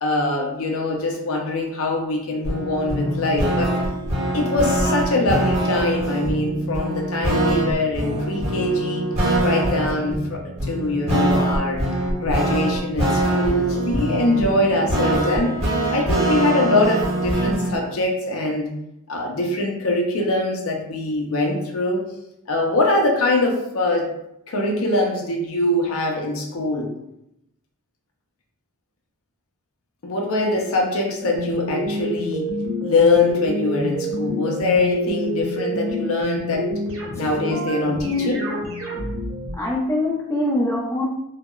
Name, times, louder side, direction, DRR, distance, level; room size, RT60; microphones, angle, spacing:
voice 1, 0.0-3.7 4.3-9.0 9.4-11.8 12.2-15.6 15.9-18.7 19.1-22.0 22.5-24.1 24.5-26.9 30.0-32.5 32.8-36.7 37.2-38.4, left 2 dB, 70° left, 1 dB, 0.5 m, -23 dB
sound 1, 2.4-17.8, right 1 dB, 30° right, 0.9 m, -23 dB
sound 2, 31.2-39.5, equal, 70° right, 0.6 m, -28 dB
voice 2, 37.9-38.3 39.6-41.0, left 2 dB, 15° left, -4 dB, 0.4 m, -23 dB
2.8 x 2.0 x 2.3 m, 0.83 s
head